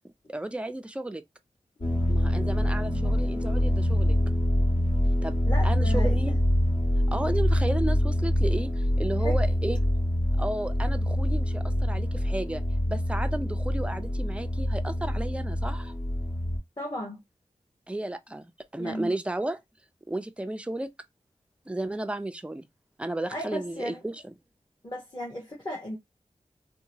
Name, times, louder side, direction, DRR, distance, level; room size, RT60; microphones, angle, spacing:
voice 1, 0.3-1.2 2.1-4.2 5.2-5.4 5.6-6.3 7.1-9.8 10.4-15.9 17.9-19.6 20.1-20.9 21.7-22.7 23.0-24.3, right 1 dB, 10° right, 0.4 m, -33 dB
sound 1, 1.8-16.6, equal, 60° left, 1.6 m, -25 dB
voice 2, 5.5-6.4 9.2-9.4 16.8-17.2 18.8-19.1 23.3-24.0 24.8-26.0, equal, 35° left, 1.0 m, -35 dB
2.8 x 2.2 x 2.7 m
wide cardioid pair, 70°, 13 cm